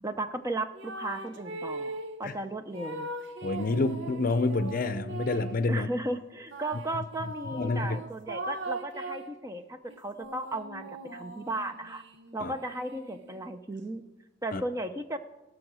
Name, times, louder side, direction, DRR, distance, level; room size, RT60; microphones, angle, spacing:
voice 1, 0.0-3.1 5.7-12.0 12.3-14.0 14.4-15.2, right 1 dB, 15° right, 0.5 m, -35 dB
sound 1, 0.7-2.2 2.7-5.7 6.5-9.4 9.9-13.5, right 2 dB, 65° right, 0.9 m, -40 dB
voice 2, 3.4-5.9 7.5-8.0 12.4-12.5 14.5-14.6, left 3 dB, 45° left, 0.6 m, -28 dB
17.5 x 6.3 x 6.1 m
head